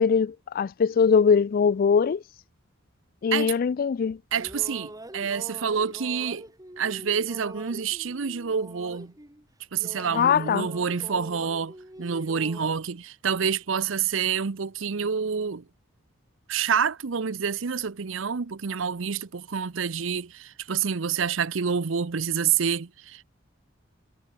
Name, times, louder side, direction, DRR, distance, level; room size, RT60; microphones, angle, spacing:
voice 1, 0.0-2.2 3.2-4.2 10.1-10.7, left 6 dB, 45° left, 0.3 m, -21 dB
sound 1, 4.1-9.5 9.7-12.7, right 1 dB, 20° right, 5.4 m, -43 dB
voice 2, 4.3-6.5 6.8-9.1 9.7-15.6 16.5-23.2, right 6 dB, 70° right, 0.7 m, -28 dB
head